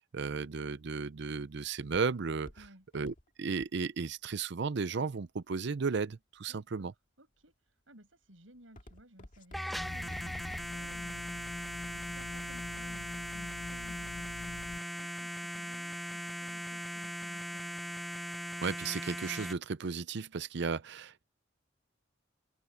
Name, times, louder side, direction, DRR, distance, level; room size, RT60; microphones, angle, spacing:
voice 1, 0.1-2.5 2.9-6.9 18.6-21.2, right 5 dB, 60° right, 0.6 m, -34 dB
Walk footsteps, 0.8-5.8 6.4-6.8 7.3-7.7 8.0-10.9 11.3-11.4, left 1 dB, 40° left, 2.0 m, -55 dB
voice 2, 6.5-6.9 7.2-17.8, right 1 dB, 80° right, 6.9 m, -58 dB
sound 1, 9.5-19.5, equal, ahead, 0.6 m, -39 dB
sound 2, 9.8-14.8, left 6 dB, 60° left, 0.3 m, -47 dB
open air
head